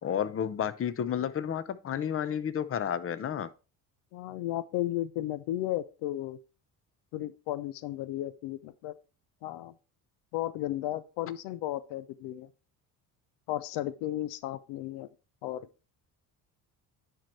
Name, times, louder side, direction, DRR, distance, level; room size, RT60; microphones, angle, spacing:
voice 1, 0.0-3.5, left 9 dB, 35° left, 0.7 m, -31 dB
voice 2, 4.1-6.4 7.1-8.9 9.4-9.7 10.3-12.5 13.5-15.1 15.4-15.7, left 14 dB, 85° left, 0.6 m, -34 dB
10.5 x 4.6 x 3.2 m
supercardioid pair, 85°, 39 cm